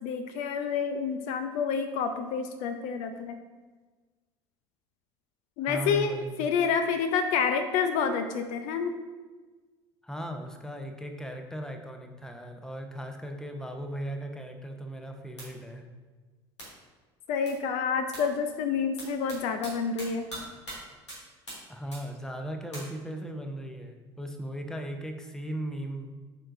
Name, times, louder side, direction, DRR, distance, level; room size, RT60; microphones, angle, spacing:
voice 1, 0.0-3.4 5.6-9.0 17.3-20.3, left 6 dB, 55° left, 8 dB, 0.5 m, -28 dB
voice 2, 5.7-6.6 10.0-15.9 21.7-26.1, right 1 dB, 5° left, 5 dB, 0.7 m, -37 dB
sound 1, 15.4-15.5 16.6-16.7 17.5-17.6 18.1-18.2 19.0-19.4 19.6-19.7 20.0-20.4 20.7-20.8 21.1-21.2 21.5-21.6 21.9-22.0 22.7-22.8, right 1 dB, 85° left, 2.0 m, -40 dB
8.8 x 4.5 x 2.6 m, 1.3 s
figure-of-eight pair, 60°, 14 cm